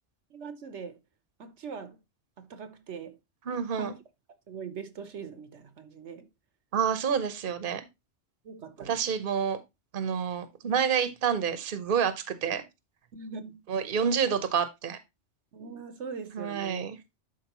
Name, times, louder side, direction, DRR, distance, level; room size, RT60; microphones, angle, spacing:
voice 1, 0.3-1.0 1.4-2.0 2.4-3.2 3.7-3.9 4.5-6.3 8.4-9.0 13.1-13.6 15.5-16.9, right 5 dB, 75° right, 1.2 m, -41 dB
voice 2, 3.5-3.9 6.7-7.8 8.8-9.6 9.9-12.6 13.7-15.0 16.3-17.0, right 7 dB, 50° right, 1.1 m, -28 dB
11.5 x 4.5 x 3.0 m
omnidirectional pair, 1.2 m